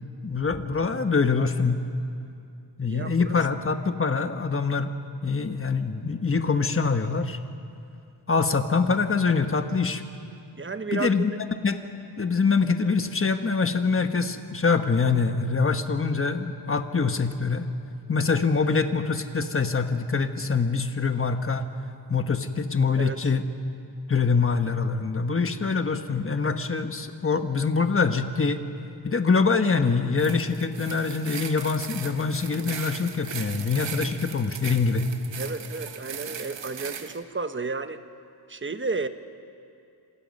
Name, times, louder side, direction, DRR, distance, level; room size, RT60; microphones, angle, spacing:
voice 1, 0.0-1.8 2.8-4.9 5.2-7.4 8.3-10.0 10.9-11.3 11.6-11.8 12.2-17.7 18.1-21.7 22.1-23.4 24.1-28.6 29.0-35.0, left 4 dB, 30° left, 7 dB, 1.3 m, -24 dB
voice 2, 2.9-3.4 10.6-11.4 23.0-23.2 35.4-38.0 38.5-39.1, right 4 dB, 25° right, 10 dB, 1.0 m, -32 dB
sound 1, 30.2-37.2, right 7 dB, 85° right, 1.3 m, -38 dB
27.5 x 26.5 x 5.4 m, 2.5 s
wide cardioid pair, 115°, 43 cm